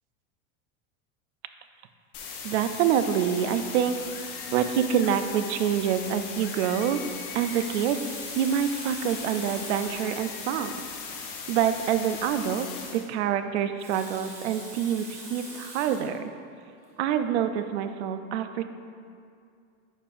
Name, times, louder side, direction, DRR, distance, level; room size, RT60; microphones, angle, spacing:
sound 1, 2.1-13.1, left 5 dB, 40° left, 0.8 m, -38 dB
voice 1, 2.4-4.0 4.5-7.0 7.3-8.0 8.4-10.7 11.5-16.3 17.0-18.6, right 9 dB, 70° right, 9 dB, 0.5 m, -26 dB
sound 2, 4.0-5.2 6.4-7.8 9.8-11.0, left 5 dB, 90° left, 0.9 m, -47 dB
Water tap faucet, 7.4-10.1 10.9-11.0 11.2-11.3 13.6-16.2 16.8-17.0, right 1 dB, 5° right, 0.7 m, -43 dB
9.4 x 5.3 x 2.5 m, 2.4 s
supercardioid pair, 175°, 35 cm